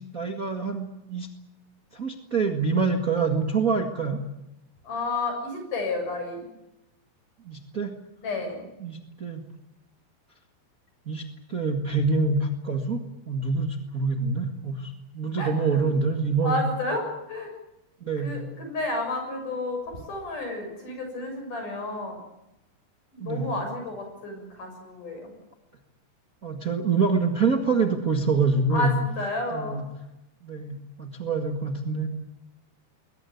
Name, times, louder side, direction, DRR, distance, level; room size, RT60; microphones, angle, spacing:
voice 1, 0.1-1.3 1.9-4.2 7.4-7.9 8.8-9.4 11.0-11.2 11.5-16.6 18.0-18.4 23.2-23.5 26.4-28.9 29.5-29.9 30.4-32.1, right 4 dB, 85° right, 3 dB, 0.7 m, -26 dB
voice 2, 4.8-6.5 8.2-8.6 15.4-15.9 16.4-17.5 18.2-22.2 23.1-25.3 28.7-29.8, left 2 dB, 45° left, 4 dB, 8.2 m, -31 dB
22.0 x 20.0 x 9.4 m, 0.91 s
omnidirectional pair, 5.0 m